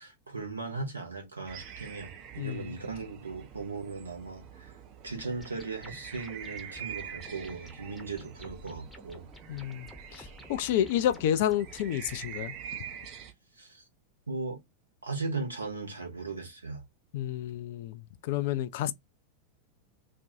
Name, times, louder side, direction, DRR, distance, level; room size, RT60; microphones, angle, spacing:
voice 1, 0.0-4.7 5.0-9.3 13.6-13.8 14.3-14.6 15.0-16.8, right 3 dB, 75° right, 0.9 m, -38 dB
sound 1, 1.5-13.3, right 9 dB, 40° right, 0.6 m, -45 dB
voice 2, 2.4-2.7 9.5-12.5 17.1-18.9, left 11 dB, 50° left, 0.3 m, -30 dB
sound 2, 5.2-12.2, left 2 dB, 5° left, 0.7 m, -52 dB
2.5 x 2.2 x 2.6 m
figure-of-eight pair, 90°, 0 cm